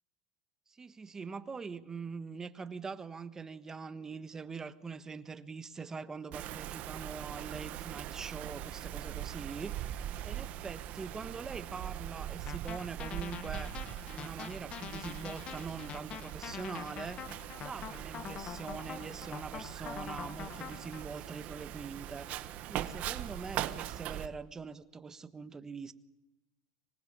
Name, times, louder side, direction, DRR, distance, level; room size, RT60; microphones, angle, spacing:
voice 1, 0.7-9.9 10.2-13.8 14.1-17.2 17.6-22.3 22.7-25.9, right 5 dB, 15° right, 1.4 m, -43 dB
Wind, 6.3-24.3, right 12 dB, 40° right, 1.6 m, -41 dB
sound 1, 12.5-21.0, left 9 dB, 30° left, 1.4 m, -45 dB
25.5 x 19.5 x 10.0 m
supercardioid pair, 145°, 3 cm